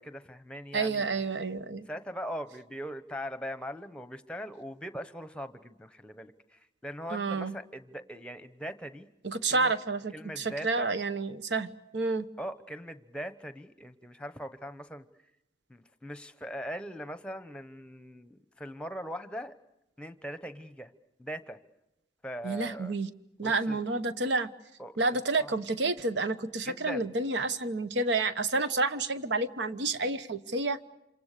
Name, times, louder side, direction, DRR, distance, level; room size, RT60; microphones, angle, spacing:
voice 1, 0.0-1.2 1.9-9.1 9.5-9.7 10.1-10.8 12.4-15.1 15.7-19.5 20.0-20.9 21.2-21.6 22.2-22.9 23.4-23.8 24.8-25.5 26.6-27.1, equal, 5° left, 11 dB, 1.0 m, -41 dB
voice 2, 0.7-1.9 7.1-7.6 9.2-12.3 22.4-23.1 23.4-24.5 25.0-30.8, right 3 dB, 75° right, 11 dB, 1.1 m, -29 dB
27.5 x 26.5 x 6.7 m, 0.90 s
head